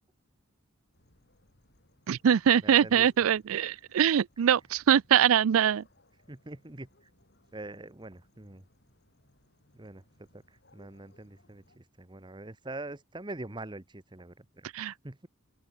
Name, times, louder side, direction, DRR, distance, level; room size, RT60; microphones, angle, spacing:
sound 1, 0.9-11.8, left 1 dB, 50° left, 5.6 m, -65 dB
voice 1, 2.1-5.8 14.7-14.9, right 9 dB, 80° right, 0.4 m, -23 dB
voice 2, 2.6-3.1 4.4-4.5 5.6-5.7 6.3-7.1 7.5-8.7 9.7-14.7 15.0-15.3, right 2 dB, 20° right, 1.0 m, -44 dB
open air
head